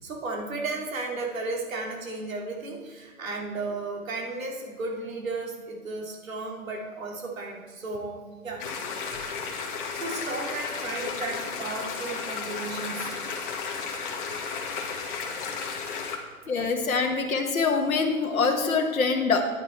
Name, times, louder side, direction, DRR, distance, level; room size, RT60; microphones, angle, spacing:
voice 1, 0.0-8.2 8.4-8.6 9.9-13.1, right 3 dB, 65° right, -1 dB, 2.6 m, -34 dB
sound 1, 8.6-16.2, left 5 dB, 35° left, 1.5 m, -33 dB
voice 2, 16.5-19.5, left 4 dB, 70° left, 3 dB, 1.4 m, -24 dB
9.9 x 8.8 x 4.3 m, 1.5 s
figure-of-eight pair, 130°, 43 cm